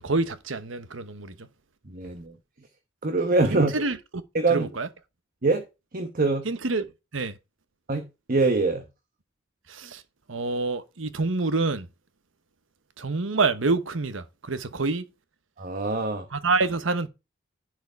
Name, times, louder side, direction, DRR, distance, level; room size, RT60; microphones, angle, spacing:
voice 1, 0.0-1.5 3.5-4.2 4.5-4.9 6.4-6.9 7.1-7.4 9.7-10.0 10.3-11.9 13.0-15.1 16.3-17.1, right 3 dB, 75° right, 1.1 m, -27 dB
voice 2, 1.9-2.3 3.0-3.7 4.3-4.7 5.4-5.6 5.9-6.5 7.9-8.0 8.3-8.8 15.6-16.3, right 3 dB, 45° right, 1.2 m, -24 dB
10.5 x 4.8 x 4.5 m
head